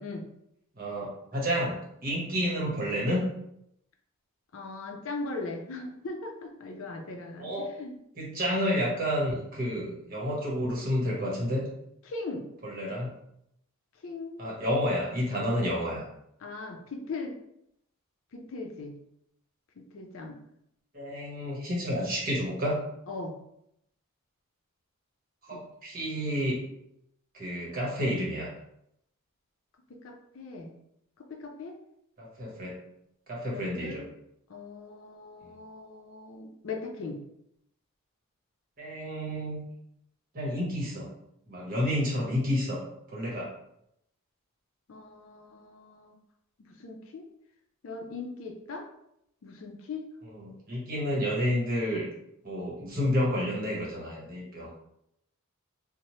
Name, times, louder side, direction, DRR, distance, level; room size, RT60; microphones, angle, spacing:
voice 1, 0.8-3.3 7.4-7.7 8.2-11.7 12.6-13.1 14.4-16.0 20.9-22.8 25.5-26.6 27.3-28.5 32.2-32.7 33.3-34.0 38.8-39.6 40.3-41.1 41.5-42.8 43.1-43.5 50.3-52.0 52.4-54.8, equal, 40° right, -4 dB, 0.9 m, -30 dB
voice 2, 4.5-8.0 12.0-12.5 14.0-14.4 16.4-17.4 18.3-18.9 19.8-20.4 23.1-23.4 25.5-25.6 30.0-30.7 31.2-31.8 33.5-34.1 34.5-37.2 44.9-46.2 46.8-47.3 47.8-48.9 49.4-50.0, left 3 dB, 65° left, 4 dB, 0.4 m, -39 dB
2.8 x 2.0 x 3.0 m, 0.76 s
head